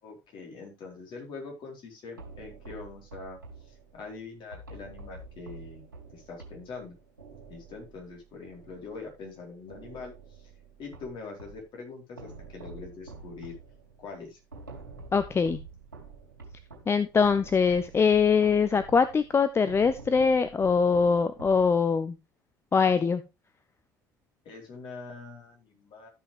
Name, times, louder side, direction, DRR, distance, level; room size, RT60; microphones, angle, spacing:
voice 1, 0.0-3.4 3.6-5.8 6.1-6.9 7.5-10.5 10.8-13.5 14.0-14.4 24.4-26.1, left 4 dB, 45° left, 0 dB, 4.1 m, -43 dB
sound 1, 2.2-9.3 9.7-11.7 12.2-22.1, right 3 dB, 85° right, 2.5 m, -47 dB
voice 2, 15.1-15.6 16.9-22.1 22.7-23.2, left 5 dB, 25° left, 12 dB, 0.7 m, -23 dB
13.0 x 5.9 x 3.4 m, 0.26 s
figure-of-eight pair, 60°, 11 cm